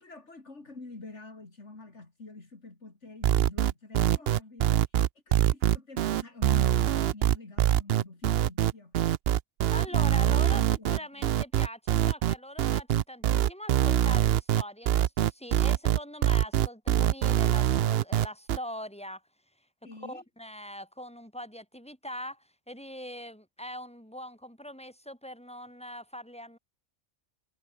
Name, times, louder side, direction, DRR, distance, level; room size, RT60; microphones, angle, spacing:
voice 1, 0.0-4.8 5.3-8.9 9.9-11.3 19.8-20.2, left 3 dB, 65° left, 3.6 m, -47 dB
sound 1, 3.2-18.6, right 11 dB, 60° right, 0.8 m, -24 dB
voice 2, 9.7-19.2 20.0-26.6, equal, 5° left, 7.2 m, -42 dB
omnidirectional pair, 1.3 m